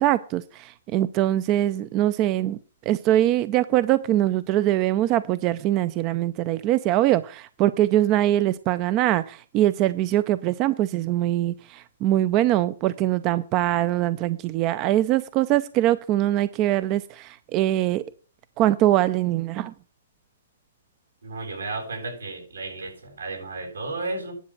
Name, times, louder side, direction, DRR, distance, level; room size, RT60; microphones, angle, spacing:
voice 1, 0.0-2.6 2.9-18.0 18.6-19.7, right 14 dB, 35° right, 15 dB, 0.5 m, -22 dB
voice 2, 21.2-24.3, right 3 dB, 90° right, 1 dB, 7.6 m, -33 dB
10.0 x 7.6 x 6.0 m, 0.39 s
hypercardioid pair, 130°, 0 cm